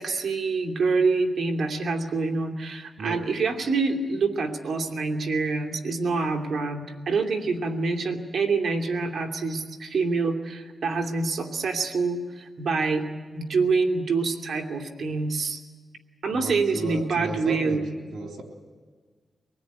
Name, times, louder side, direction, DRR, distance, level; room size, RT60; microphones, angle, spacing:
voice 1, 0.0-13.1 13.3-15.6 16.2-17.8, right 4 dB, 70° right, 2 dB, 2.8 m, -26 dB
voice 2, 16.3-17.8 18.1-18.4, right 3 dB, 90° right, 2 dB, 3.7 m, -34 dB
24.5 x 19.5 x 9.6 m, 1.5 s
cardioid pair, 85°, 0 cm